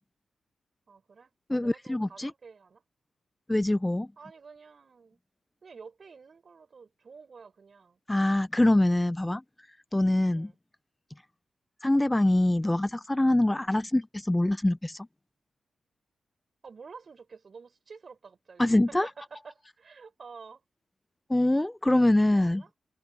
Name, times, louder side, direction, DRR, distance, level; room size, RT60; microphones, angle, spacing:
voice 1, 0.9-2.8 4.2-5.2 5.6-8.0 10.3-10.6 13.5-13.7 16.6-20.6 21.9-22.7, right 5 dB, 50° right, 6.8 m, -50 dB
voice 2, 1.5-2.3 3.5-4.1 8.1-9.4 9.9-10.5 11.8-15.1 18.6-19.1 21.3-22.6, left 1 dB, 10° left, 0.6 m, -24 dB
cardioid pair, 80°, 0 cm